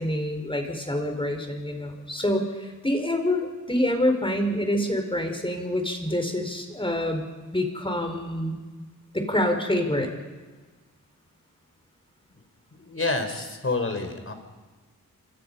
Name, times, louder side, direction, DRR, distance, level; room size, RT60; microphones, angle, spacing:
voice 1, 0.0-8.6 9.1-10.1, left 1 dB, 15° left, 4 dB, 5.0 m, -26 dB
voice 2, 12.8-14.3, left 3 dB, 40° left, 7 dB, 4.3 m, -28 dB
26.5 x 25.5 x 5.6 m, 1.3 s
cardioid pair, 60°, 33 cm